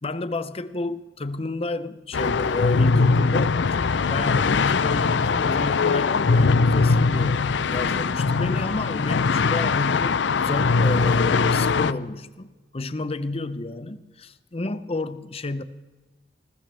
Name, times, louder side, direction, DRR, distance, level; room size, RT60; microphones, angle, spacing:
voice 1, 0.0-15.6, left 2 dB, 35° left, 0.7 m, -31 dB
sound 1, 2.1-11.9, left 4 dB, 75° left, 0.5 m, -21 dB
21.0 x 20.0 x 3.4 m
head